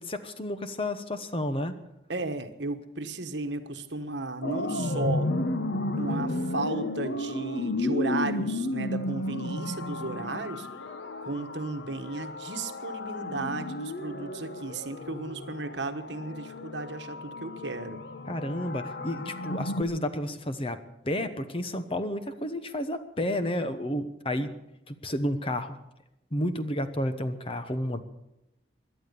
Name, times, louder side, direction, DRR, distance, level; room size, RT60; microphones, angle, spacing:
voice 1, 0.0-1.7 18.3-20.8 21.0-24.5 24.9-25.8 26.3-28.0, left 1 dB, 30° left, 10 dB, 1.0 m, -31 dB
voice 2, 2.1-5.3 6.0-10.7 11.2-18.0, right 3 dB, 70° right, 8 dB, 1.3 m, -34 dB
sound 1, 4.4-19.8, left 1 dB, 70° left, 1.1 m, -33 dB
18.0 x 11.5 x 6.9 m, 0.86 s
head